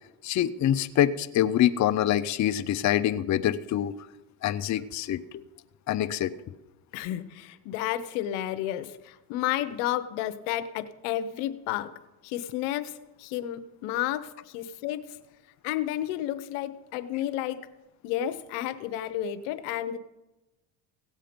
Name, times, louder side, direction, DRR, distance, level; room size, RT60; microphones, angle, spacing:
voice 1, 0.2-3.9 4.4-5.4 5.9-6.3, left 11 dB, 40° left, 11 dB, 0.6 m, -25 dB
voice 2, 6.9-11.9 12.2-12.9 13.2-15.2 15.6-17.6 18.0-20.0, left 12 dB, 85° left, 11 dB, 0.9 m, -31 dB
16.5 x 7.6 x 5.1 m, 1.0 s
supercardioid pair, 90°, 45 cm